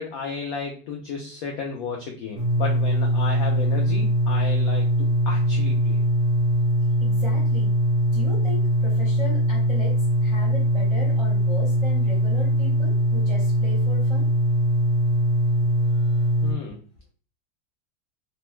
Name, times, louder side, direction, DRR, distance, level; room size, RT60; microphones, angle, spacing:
voice 1, 0.0-6.0 15.8-16.8, left 5 dB, 80° left, 1 dB, 0.8 m, -34 dB
sound 1, 2.4-16.5, right 1 dB, 70° right, 0.7 m, -21 dB
voice 2, 7.0-7.7 8.1-9.9 10.2-14.3, left 2 dB, 30° right, -6 dB, 0.5 m, -37 dB
3.0 x 2.1 x 3.0 m, 0.38 s
omnidirectional pair, 2.0 m